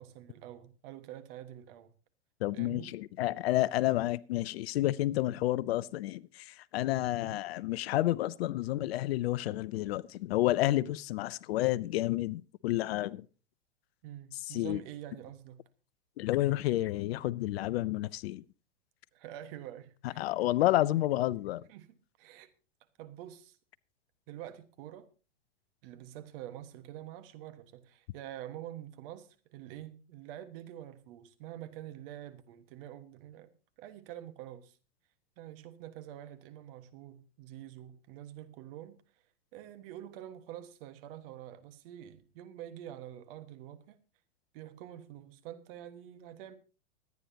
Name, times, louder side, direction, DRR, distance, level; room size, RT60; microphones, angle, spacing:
voice 1, 0.0-1.9 2.5-2.9 7.2-7.4 14.0-15.6 19.1-20.3 21.7-22.5 23.0-23.6 24.3-25.1 25.8-33.5 33.8-34.8 35.4-39.0 39.5-44.0 44.5-46.5, right 12 dB, 50° right, 1.5 m, -47 dB
voice 2, 2.4-13.3 14.5-14.8 16.2-18.4 20.0-21.6, left 15 dB, 55° left, 0.5 m, -30 dB
25.0 x 9.3 x 2.8 m
hypercardioid pair, 115°, 37 cm